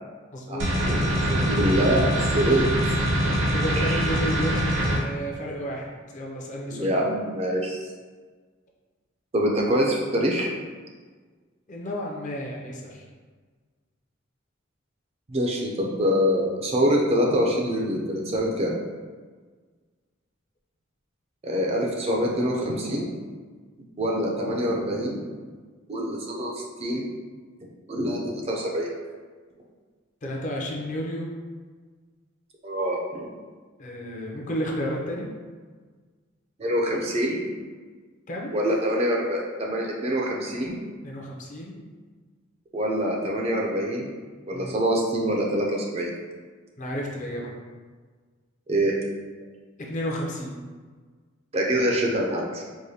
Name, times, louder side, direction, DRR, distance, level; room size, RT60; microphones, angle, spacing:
voice 1, 0.3-0.7 2.3-2.6 3.5-6.9 11.7-13.0 30.2-31.3 33.8-35.3 38.3-38.5 41.0-41.8 44.5-44.7 46.8-47.5 49.8-50.6, equal, 40° left, -2 dB, 0.6 m, -32 dB
sound 1, 0.6-5.0, equal, 65° right, 0.7 m, -23 dB
voice 2, 0.9-2.7 3.8-4.1 6.7-7.9 9.3-10.5 15.3-18.7 21.4-23.1 24.0-25.3 25.9-27.1 27.9-28.9 32.6-33.3 36.6-37.6 38.5-40.8 42.7-44.1 44.5-46.1 48.7-49.0 51.5-52.6, equal, 30° right, -1 dB, 0.4 m, -25 dB
4.7 x 2.2 x 2.7 m, 1.5 s
head